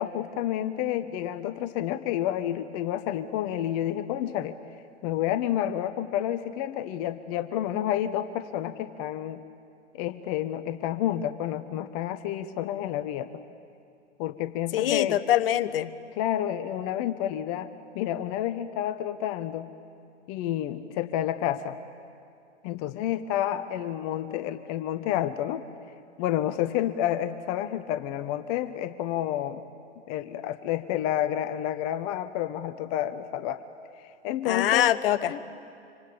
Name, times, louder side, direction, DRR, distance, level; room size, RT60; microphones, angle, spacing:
voice 1, 0.0-4.6 5.0-9.4 9.9-13.3 14.2-15.2 16.1-17.7 17.9-19.7 20.3-21.8 22.6-25.6 26.2-29.6 30.1-33.6 33.9-34.9 35.3-35.4, left 11 dB, 30° left, 11 dB, 0.9 m, -29 dB
voice 2, 14.7-15.9 34.5-35.3, left 12 dB, 50° left, 12 dB, 1.1 m, -24 dB
26.0 x 25.5 x 8.7 m, 2.5 s
figure-of-eight pair, 115°, 36 cm